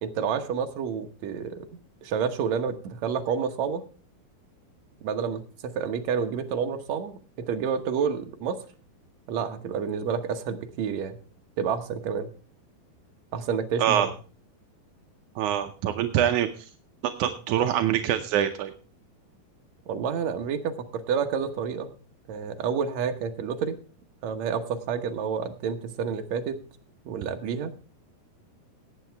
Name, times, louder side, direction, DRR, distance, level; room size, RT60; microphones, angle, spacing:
voice 1, 0.0-1.7 2.0-3.8 5.0-8.6 9.3-11.2 11.6-12.3 13.3-14.1 19.9-21.9 22.3-23.8 24.2-26.6 27.1-27.7, right 6 dB, 65° right, 5 dB, 1.9 m, -29 dB
voice 2, 15.4-16.5 17.2-18.7, right 10 dB, 80° right, 6 dB, 1.8 m, -24 dB
18.5 x 8.5 x 3.4 m, 0.37 s
omnidirectional pair, 4.3 m